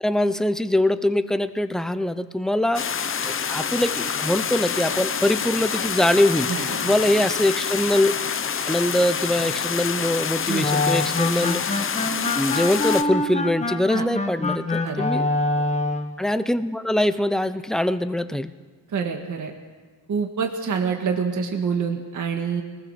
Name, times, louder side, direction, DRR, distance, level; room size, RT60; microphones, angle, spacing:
voice 1, 0.0-2.8 3.2-8.2 8.7-12.0 12.3-15.2 16.2-18.5, left 1 dB, ahead, 11 dB, 0.7 m, -23 dB
sound 1, 2.7-13.0, left 7 dB, 35° left, 0.8 m, -27 dB
sound 2, 4.8-5.3 5.7-6.2 6.7-7.1, left 7 dB, 60° left, 2.1 m, -39 dB
voice 2, 6.5-7.0 10.5-10.7 13.9-14.1 14.8-15.1 18.9-19.5 20.1-22.6, right 6 dB, 50° right, 3 dB, 2.0 m, -26 dB
sound 3, 10.6-16.1, left 2 dB, 15° left, 1.3 m, -25 dB
25.5 x 20.0 x 6.6 m, 1.4 s
cardioid pair, 145°, 38 cm